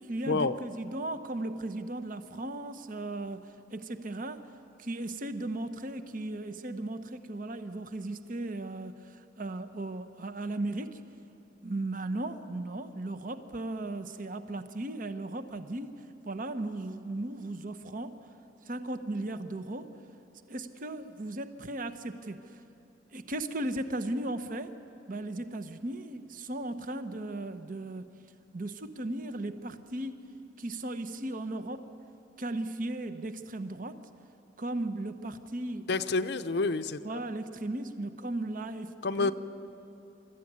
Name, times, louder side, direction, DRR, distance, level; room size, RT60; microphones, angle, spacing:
voice 1, 0.0-4.5 4.8-11.0 11.6-16.0 16.2-18.2 18.6-19.9 20.5-22.6 23.1-24.7 25.1-28.1 28.5-30.2 30.6-31.9 32.4-34.0 34.6-35.9 37.0-39.3, right 2 dB, 50° right, 10 dB, 0.9 m, -36 dB
voice 2, 35.9-37.0 39.0-39.3, left 3 dB, 65° left, 10 dB, 0.6 m, -28 dB
26.5 x 13.5 x 9.6 m, 2.8 s
head